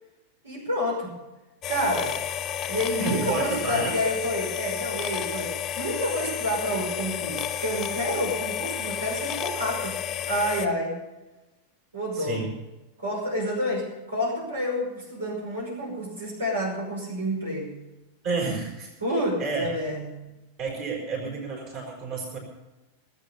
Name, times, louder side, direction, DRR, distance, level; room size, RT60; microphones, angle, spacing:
voice 1, 0.4-1.2 1.7-2.2 2.7-10.0 10.2-11.0 11.9-12.4 13.0-17.7 19.0-20.2, equal, 70° right, -3 dB, 5.7 m, -29 dB
sound 1, 1.6-10.7, left 10 dB, 30° left, 1.1 m, -31 dB
voice 2, 3.0-4.0 12.1-12.5 18.2-18.9 19.4-19.7 20.6-22.4, right 3 dB, 40° right, -1 dB, 5.6 m, -30 dB
19.0 x 8.8 x 6.9 m, 1.1 s
figure-of-eight pair, 90°, 0 cm